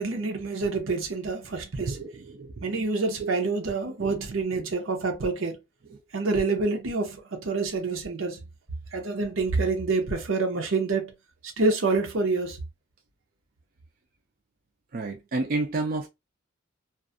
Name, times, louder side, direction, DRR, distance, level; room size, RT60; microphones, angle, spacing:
voice 1, 0.0-2.0 2.6-5.6 6.1-8.4 8.9-11.1 11.6-12.6, right 3 dB, 85° right, 0.7 m, -27 dB
voice 2, 1.8-2.8 3.2-3.3 4.0-4.1 4.5-4.6 5.9-6.0 14.9-16.1, right 3 dB, 45° right, 0.4 m, -31 dB
2.5 x 2.3 x 2.4 m
head